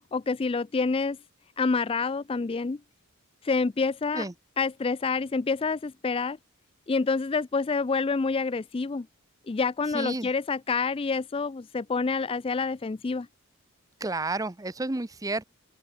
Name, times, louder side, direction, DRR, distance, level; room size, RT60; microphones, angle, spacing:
voice 1, 0.1-1.2 1.6-2.8 3.4-4.3 4.6-6.4 6.9-9.1 9.5-13.3, left 4 dB, 25° left, 0.4 m, -27 dB
voice 2, 9.9-10.3 14.0-15.4, right 2 dB, 15° right, 0.7 m, -31 dB
open air
head